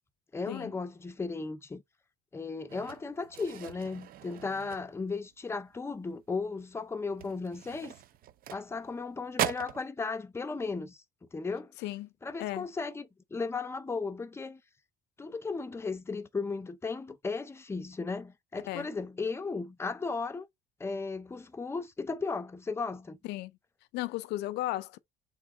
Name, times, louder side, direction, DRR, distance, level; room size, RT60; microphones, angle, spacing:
voice 1, 0.3-1.8 2.3-7.9 8.5-11.0 11.3-11.7 12.2-14.6 15.2-20.5 20.8-23.2, left 4 dB, 15° left, 0.6 m, -35 dB
sound 1, 2.7-5.3 5.7-6.0 6.3-6.5 7.1-9.0 9.3-9.8, right 12 dB, 60° right, 0.5 m, -39 dB
voice 2, 23.9-25.0, left 16 dB, 80° left, 0.4 m, -35 dB
3.5 x 3.0 x 4.7 m
cardioid pair, 110°, 17 cm